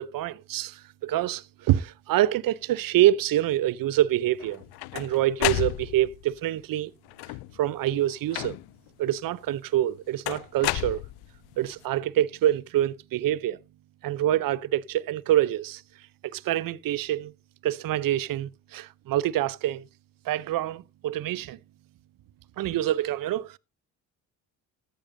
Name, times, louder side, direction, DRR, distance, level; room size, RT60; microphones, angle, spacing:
voice 1, 0.0-4.6 4.9-6.9 7.6-8.6 9.0-11.0 11.6-13.6 14.0-15.8 16.3-17.3 17.6-19.8 20.3-21.6 22.6-23.6, right 13 dB, 60° right, 0.7 m, -26 dB
sound 1, 4.4-6.2 7.1-7.6 8.3-8.9 10.3-11.5, left 21 dB, 75° left, 0.5 m, -31 dB
14.0 x 10.5 x 2.7 m
supercardioid pair, 60°, 39 cm